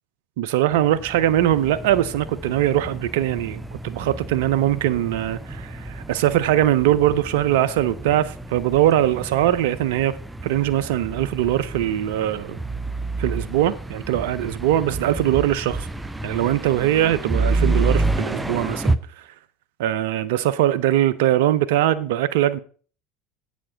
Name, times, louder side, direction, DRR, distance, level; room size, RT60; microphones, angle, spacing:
voice 1, 0.4-10.2 10.4-12.6 13.2-15.9 16.2-19.0 19.8-22.6, right 12 dB, 75° right, 0.6 m, -21 dB
sound 1, 0.7-19.0, right 2 dB, 10° right, 0.7 m, -29 dB
8.6 x 7.2 x 5.6 m
hypercardioid pair, 80°, 0 cm